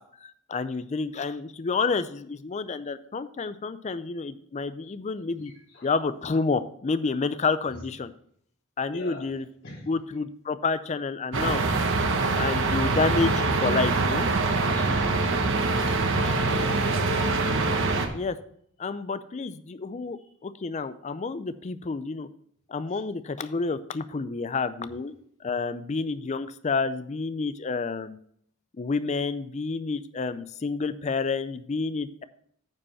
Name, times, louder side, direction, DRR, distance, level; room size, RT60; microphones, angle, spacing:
voice 1, 0.2-5.5 5.8-8.1 8.8-9.4 9.9-11.6 12.4-14.3 14.6-14.9 16.2-16.3 18.1-18.4 18.8-20.2 20.4-22.3 22.7-25.1 25.4-28.2 28.8-32.2, left 4 dB, 35° left, 13 dB, 0.4 m, -29 dB
voice 2, 5.4-5.9 7.7-7.8 8.9-9.3 9.6-9.9 15.9-16.0 16.4-17.4 20.2-20.3 22.9-23.0 24.8-24.9, left 1 dB, 60° left, -6 dB, 4.1 m, -42 dB
sound 1, 11.3-18.1, right 3 dB, 60° right, 1.0 m, -24 dB
9.5 x 5.1 x 5.6 m, 0.66 s
head